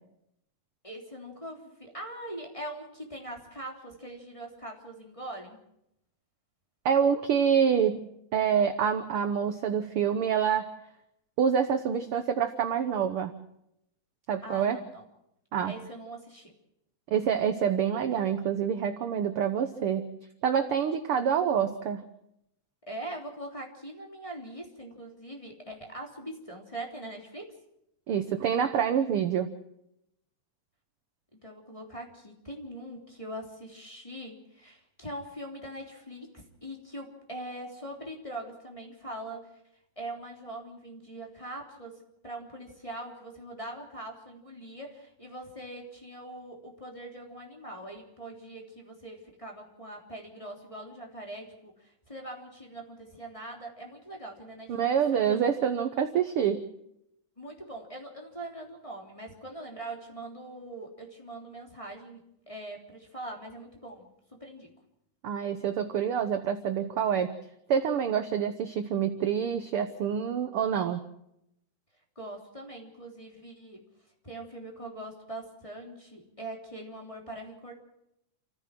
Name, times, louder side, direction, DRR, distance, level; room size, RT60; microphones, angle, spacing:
voice 1, 0.8-5.6 14.4-15.0 15.6-16.5 20.8-21.2 22.9-27.5 31.4-39.5 39.9-54.9 55.3-55.5 57.4-64.1 64.4-64.7 72.1-73.8 74.2-77.7, right 1 dB, 10° left, 0 dB, 3.1 m, -42 dB
voice 2, 6.8-8.0 8.3-10.7 11.4-13.3 14.3-14.8 15.5-15.8 17.1-20.1 20.4-22.0 28.1-29.5 54.7-56.6 65.2-67.3 67.7-71.0, right 8 dB, 65° right, 8 dB, 1.4 m, -26 dB
28.5 x 15.0 x 6.1 m, 0.80 s
omnidirectional pair, 3.6 m